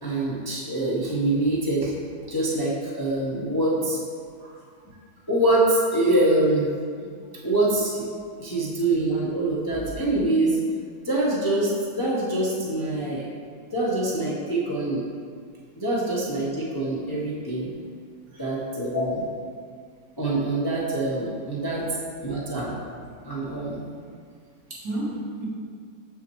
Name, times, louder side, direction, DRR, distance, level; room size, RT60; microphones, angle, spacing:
voice 1, 0.0-1.9 2.3-4.0 5.3-6.7 7.4-8.1 8.4-10.6 11.0-13.3 13.7-15.0 15.8-17.7 18.4-19.1 20.2-21.8 22.2-22.7 23.2-23.8, right 2 dB, 20° left, -6 dB, 0.8 m, -24 dB
voice 2, 24.7-25.5, equal, 75° right, -6 dB, 2.2 m, -33 dB
7.0 x 6.5 x 3.1 m, 2.1 s
omnidirectional pair, 1.8 m